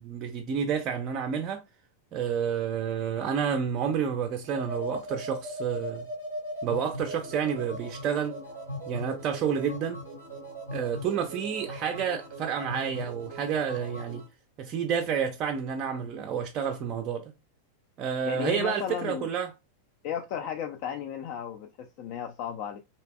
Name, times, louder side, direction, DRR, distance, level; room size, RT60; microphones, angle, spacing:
voice 1, 0.0-1.6 2.1-6.1 6.6-8.4 8.9-10.0 10.7-14.2 14.6-17.3 18.0-19.5, right 7 dB, 35° right, 0.4 m, -30 dB
sound 1, 4.4-14.3, equal, 90° left, 1.8 m, -39 dB
voice 2, 18.2-19.3 20.0-22.8, left 8 dB, 45° left, 0.3 m, -34 dB
3.2 x 2.8 x 2.2 m
figure-of-eight pair, 90°, 0 cm